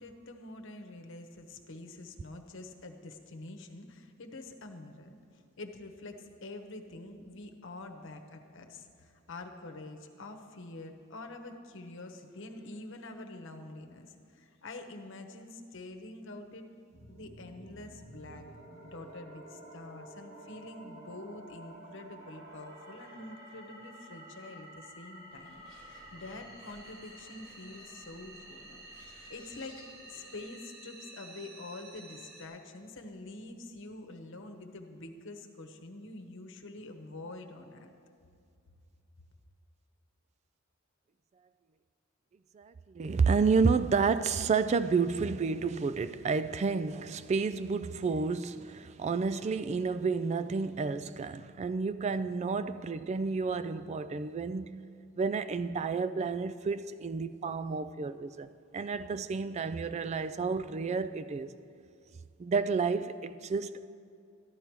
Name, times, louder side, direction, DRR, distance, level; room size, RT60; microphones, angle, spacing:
voice 1, 0.0-16.7 17.1-18.4 18.8-37.9, left 2 dB, 65° left, 1.0 m, -46 dB
sound 1, 16.9-32.5, right 1 dB, 50° right, 2.6 m, -51 dB
Bird, 25.3-30.4, left 1 dB, 5° left, 3.8 m, -59 dB
voice 2, 42.5-54.8 55.2-61.5 62.4-63.9, right 4 dB, 35° right, 0.3 m, -30 dB
14.0 x 11.5 x 4.7 m
head